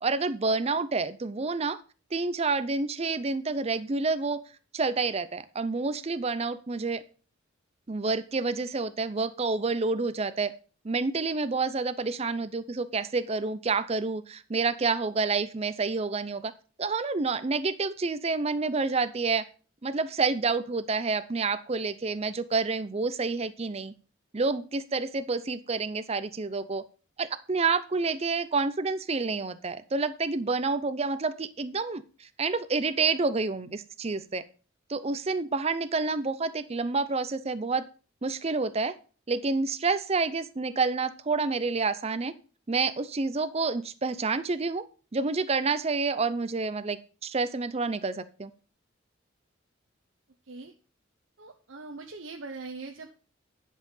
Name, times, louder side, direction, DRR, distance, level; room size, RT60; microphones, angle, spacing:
voice 1, 0.0-1.8 2.1-4.4 4.7-7.0 7.9-10.5 10.8-16.5 16.8-19.5 19.8-23.9 24.3-26.8 27.2-34.4 34.9-37.9 38.2-39.0 39.3-42.3 42.7-44.8 45.1-48.5, right 4 dB, 30° right, 13 dB, 0.5 m, -28 dB
voice 2, 51.4-53.1, right 3 dB, 70° right, 3 dB, 0.9 m, -41 dB
10.0 x 5.5 x 5.6 m, 0.37 s
head